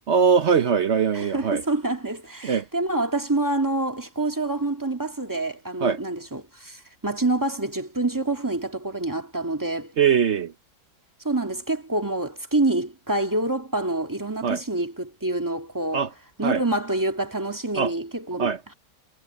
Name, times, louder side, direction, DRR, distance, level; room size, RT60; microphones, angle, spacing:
voice 1, 0.1-1.6 2.4-2.6 5.8-6.0 10.0-10.5 14.4-14.6 15.9-16.1 16.4-16.6 17.8-17.9 18.4-18.6, right 6 dB, 55° right, 0.7 m, -21 dB
voice 2, 1.1-9.9 11.2-16.1 16.4-18.7, right 2 dB, 10° right, 1.9 m, -27 dB
omnidirectional pair, 2.3 m